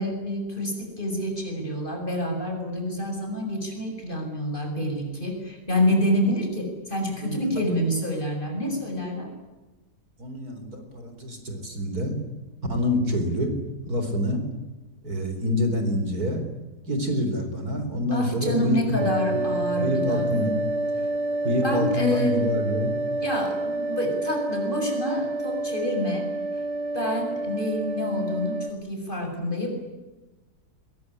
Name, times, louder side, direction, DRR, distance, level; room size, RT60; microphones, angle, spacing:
voice 1, 0.0-9.3 18.1-20.3 21.6-22.4 23.2-26.3 26.9-29.7, equal, 30° left, 3 dB, 7.0 m, -28 dB
voice 2, 7.2-7.6 10.2-12.2 12.7-13.5 13.8-14.4 15.0-16.4 16.9-19.0 19.3-19.5 19.8-20.6 21.4-22.9, left 1 dB, 60° right, 6 dB, 4.6 m, -26 dB
sound 1, 19.0-28.7, right 2 dB, 35° right, 2.1 m, -28 dB
22.5 x 22.0 x 10.0 m, 1.1 s
omnidirectional pair, 1.8 m